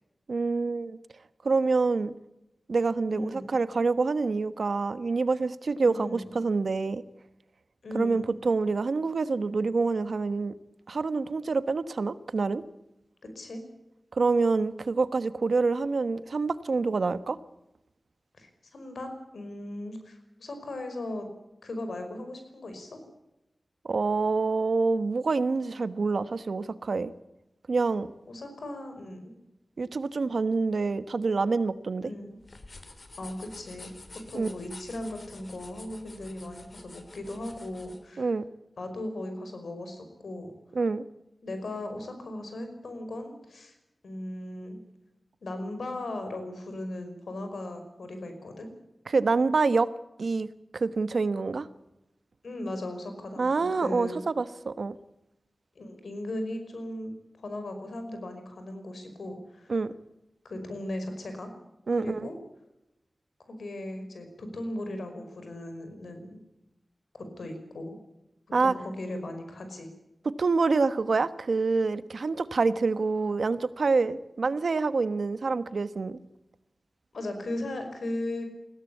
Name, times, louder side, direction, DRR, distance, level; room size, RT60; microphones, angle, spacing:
voice 1, 0.3-1.0 1.4-2.1 2.7-7.0 7.9-10.5 10.9-12.6 14.1-17.4 23.8-27.1 27.7-28.1 29.8-32.1 34.3-34.5 38.2-38.4 40.7-41.0 49.1-49.9 50.2-50.5 50.7-51.7 53.4-55.0 59.7-59.9 61.9-62.3 68.5-68.7 70.4-76.2, right 4 dB, 75° right, 13 dB, 1.2 m, -26 dB
voice 2, 3.1-3.6 5.8-6.3 7.8-8.4 13.4-13.6 18.4-21.3 21.6-23.0 28.3-29.3 32.0-32.4 33.2-33.9 34.3-38.3 38.8-40.5 41.4-43.8 44.0-44.8 45.4-48.7 52.4-54.2 55.8-59.7 60.4-61.5 61.9-62.4 63.5-66.4 67.1-68.0 68.6-69.9 77.1-78.4, left 1 dB, 85° left, 6 dB, 5.4 m, -37 dB
sound 1, 32.4-38.0, left 2 dB, 55° left, 3.2 m, -49 dB
21.5 x 17.0 x 8.5 m, 0.90 s
cardioid pair, 50°, 0 cm